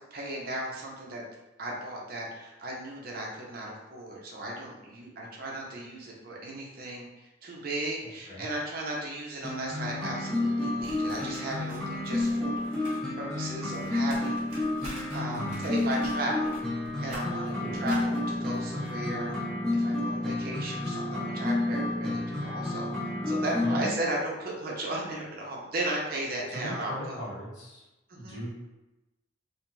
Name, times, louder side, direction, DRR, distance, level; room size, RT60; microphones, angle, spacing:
voice 1, 0.1-1.2 1.6-7.0 7.4-14.5 15.1-16.6 17.0-19.4 19.7-22.9 23.3-27.2 28.1-28.4, right 1 dB, 50° right, -2 dB, 0.6 m, -35 dB
sound 1, 9.4-23.8, left 2 dB, 5° left, 0.4 m, -30 dB
sound 2, 10.8-13.0 13.3-19.4, equal, 35° right, 0.9 m, -48 dB
voice 2, 23.6-24.0 26.5-27.8 28.1-28.5, equal, 65° left, -7 dB, 1.1 m, -38 dB
2.5 x 2.3 x 3.0 m, 1.0 s
head